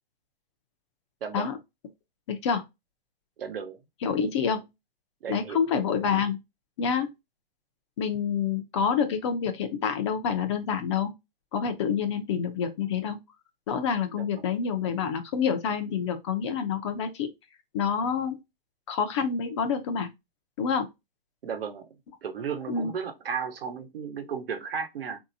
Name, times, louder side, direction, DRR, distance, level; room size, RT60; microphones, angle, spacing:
voice 1, 2.3-2.6 4.0-4.6 5.3-6.4 6.8-7.1 8.0-11.1 11.5-13.2 13.7-17.3 17.7-18.4 18.9-20.1 20.6-20.9 22.7-22.9, left 6 dB, 30° left, 0.5 m, -27 dB
voice 2, 3.4-3.8 5.2-5.6 14.2-14.5 21.4-21.9 22.2-25.2, right 6 dB, 75° right, 1.0 m, -34 dB
3.2 x 2.7 x 2.6 m
hypercardioid pair, 145°, 29 cm